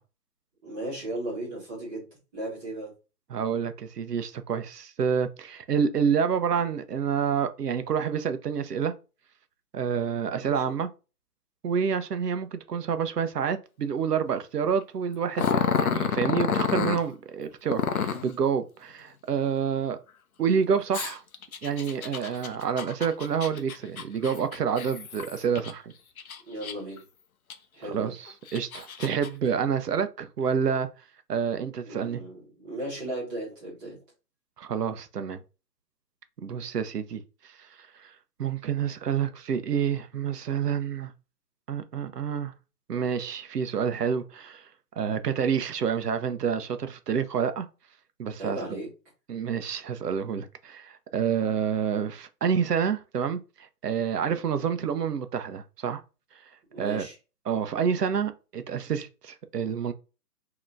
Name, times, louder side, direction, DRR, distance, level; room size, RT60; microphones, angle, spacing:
voice 1, 0.6-2.9 10.4-10.7 26.5-27.0 27.7-28.1 31.8-34.0 48.4-48.9 56.7-57.1, right 1 dB, 15° right, 1.5 m, -36 dB
voice 2, 3.3-8.9 9.7-10.9 11.6-20.0 20.4-21.2 21.6-25.9 27.9-30.9 31.3-32.2 34.6-35.4 36.4-37.6 38.0-38.1 38.4-41.1 41.7-42.5 42.9-44.7 45.0-47.7 48.2-48.6 49.3-56.0 56.8-57.1 57.5-59.9, right 7 dB, 70° right, 0.8 m, -28 dB
Growling, 15.3-17.0 17.7-18.3 20.9-25.7 26.2-27.0 27.5-27.6 28.3-29.3, left 7 dB, 60° left, 0.7 m, -29 dB
5.2 x 3.0 x 2.5 m
hypercardioid pair, 160°, 49 cm